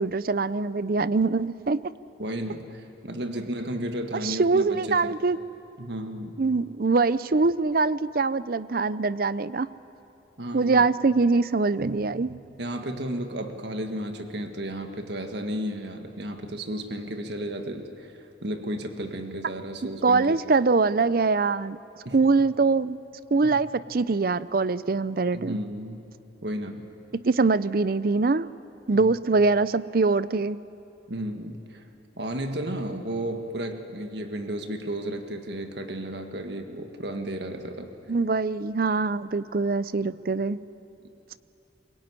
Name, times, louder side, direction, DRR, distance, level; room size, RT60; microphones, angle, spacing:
voice 1, 0.0-1.9 4.2-5.4 6.4-9.7 10.5-12.3 20.0-21.8 22.1-23.0 23.3-25.6 27.1-28.5 28.9-30.6 38.1-40.6, right 3 dB, 50° right, 17 dB, 0.6 m, -23 dB
voice 2, 2.2-5.1 5.8-6.4 10.4-10.8 11.8-12.0 12.3-18.1 18.4-20.4 22.0-22.1 23.4-23.6 25.3-26.0 26.4-26.9 29.0-29.1 31.1-31.8 32.2-37.9, right 1 dB, 65° right, 6 dB, 1.7 m, -33 dB
22.0 x 22.0 x 9.7 m, 2.9 s
head